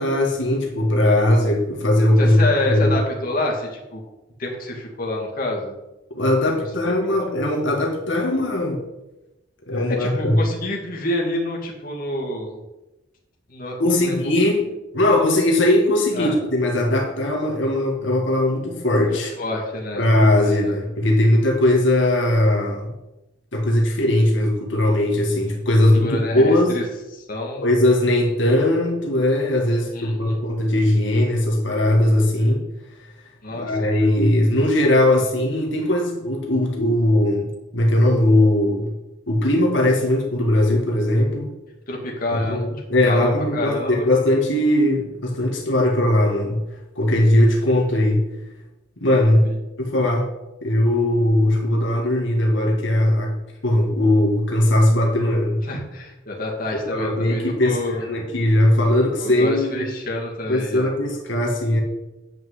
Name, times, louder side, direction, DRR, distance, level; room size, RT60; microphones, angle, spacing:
voice 1, 0.0-2.4 2.7-2.9 6.1-8.8 9.7-10.4 13.8-14.7 14.9-19.3 20.0-22.9 23.5-26.8 27.6-32.6 33.5-37.5 37.7-38.9 39.3-41.5 42.3-46.6 47.0-48.3 49.0-49.5 49.8-50.3 50.6-53.3 53.6-55.6 56.7-59.9 60.5-61.8, left 1 dB, 70° left, 0 dB, 2.1 m, -19 dB
voice 2, 2.2-4.0 4.4-5.8 10.0-12.6 13.5-13.8 14.0-14.3 16.1-16.3 19.1-20.1 20.4-20.8 26.0-26.8 27.1-27.6 29.9-30.1 33.4-33.9 35.2-35.3 41.9-42.7 43.1-44.1 49.4-49.5 55.7-58.0 59.2-60.9, left 1 dB, 45° left, -1 dB, 2.2 m, -28 dB
9.1 x 5.7 x 8.2 m, 0.97 s
head